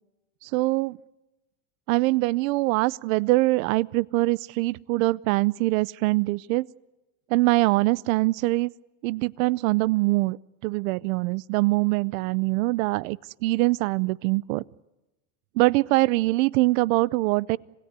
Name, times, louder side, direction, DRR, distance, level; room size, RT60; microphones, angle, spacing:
voice 1, 0.4-1.0 1.9-6.7 7.3-8.7 9.0-10.4 10.6-14.6 15.6-17.6, right 21 dB, 70° right, 23 dB, 0.7 m, -23 dB
27.0 x 18.0 x 8.2 m, 1.0 s
cardioid pair, 160°, 41 cm